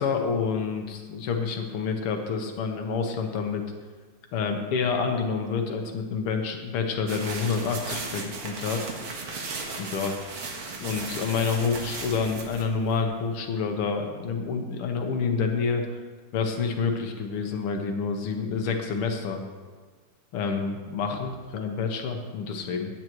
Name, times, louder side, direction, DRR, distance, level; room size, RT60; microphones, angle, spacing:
voice 1, 0.0-3.6 4.3-8.9 9.8-10.2 10.8-15.9 16.3-19.4 20.3-22.9, left 5 dB, 60° left, 4 dB, 1.7 m, -28 dB
sound 1, 7.1-13.4, right 3 dB, 55° right, 2.0 m, -36 dB
17.5 x 9.2 x 3.1 m, 1.5 s
omnidirectional pair, 3.4 m